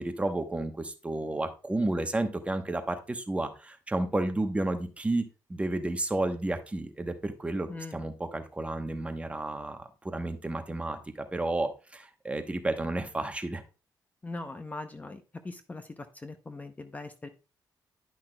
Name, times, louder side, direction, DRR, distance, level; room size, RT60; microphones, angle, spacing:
voice 1, 0.0-13.6, right 2 dB, 15° right, 7 dB, 0.9 m, -32 dB
voice 2, 14.2-17.3, left 2 dB, 20° left, 8 dB, 0.6 m, -41 dB
10.5 x 5.8 x 2.2 m, 0.32 s
cardioid pair, 110°, 8 cm